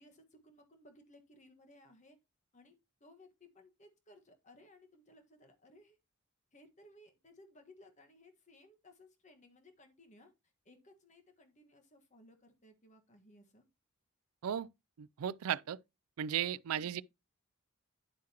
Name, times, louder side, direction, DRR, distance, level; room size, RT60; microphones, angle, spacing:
voice 1, 0.0-2.2 2.5-6.0 6.5-10.3 10.6-13.6 15.5-15.7 16.7-17.0, left 1 dB, 35° left, 1.5 m, -61 dB
voice 2, 15.0-15.8 16.2-17.0, right 9 dB, 85° right, 0.4 m, -35 dB
10.0 x 7.5 x 2.9 m
head